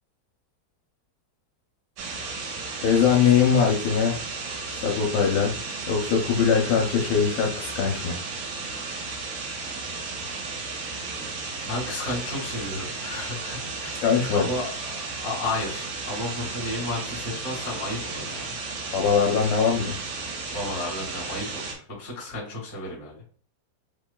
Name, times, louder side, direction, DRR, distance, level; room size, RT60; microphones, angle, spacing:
sound 1, 2.0-21.7, right 3 dB, 70° right, 2.3 m, -34 dB
voice 1, 2.8-4.2 4.8-5.5 5.9-8.2 14.0-14.5 18.9-20.0, left 7 dB, 80° left, 0 dB, 2.5 m, -21 dB
voice 2, 11.6-14.1 14.3-18.6 20.5-23.2, left 2 dB, 30° left, -4 dB, 1.9 m, -33 dB
6.7 x 3.0 x 2.2 m, 0.43 s
omnidirectional pair, 4.8 m